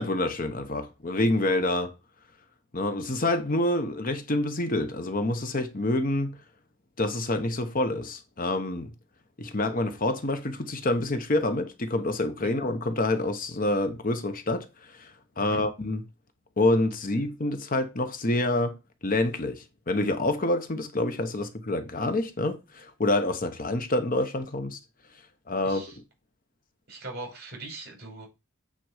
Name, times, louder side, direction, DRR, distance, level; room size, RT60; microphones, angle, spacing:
voice 1, 0.0-1.9 2.7-6.4 7.0-8.9 9.4-16.0 16.6-18.8 19.0-24.8 25.5-25.8, left 2 dB, 40° left, 1.0 m, -27 dB
voice 2, 25.6-25.9 26.9-28.3, right 2 dB, 50° right, 5.2 m, -40 dB
9.1 x 4.3 x 4.9 m
head